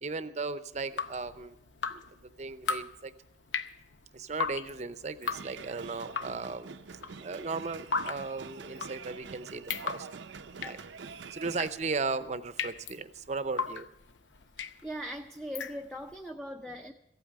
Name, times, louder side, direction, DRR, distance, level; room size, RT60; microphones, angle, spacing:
voice 1, 0.0-1.6 1.9-2.0 2.4-3.1 4.1-6.7 7.2-10.1 10.6-10.8 11.3-13.9, right 4 dB, 40° right, 12 dB, 0.6 m, -36 dB
Drip, 0.7-16.2, left 5 dB, 85° left, 0.7 m, -38 dB
sound 1, 5.2-11.7, right 5 dB, 80° right, 0.6 m, -46 dB
voice 2, 14.8-16.9, equal, 5° left, 4 dB, 0.5 m, -40 dB
15.5 x 8.9 x 7.5 m, 0.85 s
head